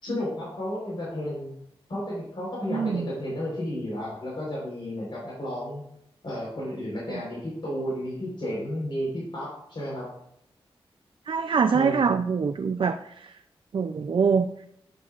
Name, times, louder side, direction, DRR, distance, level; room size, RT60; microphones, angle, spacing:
voice 1, 0.0-1.5 1.9-5.8 6.2-10.1 11.7-12.1, left 1 dB, 60° left, -5 dB, 4.1 m, -32 dB
voice 2, 2.7-3.1 11.3-13.3 13.7-14.5, right 5 dB, 60° right, 7 dB, 0.4 m, -24 dB
13.5 x 9.5 x 2.5 m, 0.75 s
wide cardioid pair, 125°, 10 cm